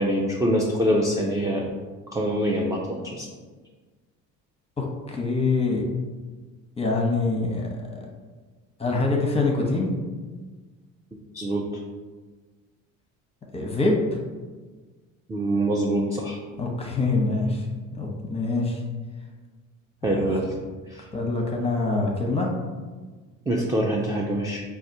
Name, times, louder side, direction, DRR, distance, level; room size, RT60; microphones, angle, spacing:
voice 1, 0.0-1.6 2.1-3.3 11.3-11.6 15.3-16.4 20.0-20.5 20.9-21.0 23.5-24.6, right 1 dB, 10° right, -2 dB, 0.4 m, -24 dB
voice 2, 4.8-5.9 6.8-8.1 8.8-10.0 13.5-14.0 16.6-17.7 17.9-18.8 20.0-20.4 21.1-22.5, left 3 dB, 15° left, 0 dB, 0.7 m, -25 dB
4.2 x 2.3 x 2.7 m, 1.4 s
hypercardioid pair, 70°, 36 cm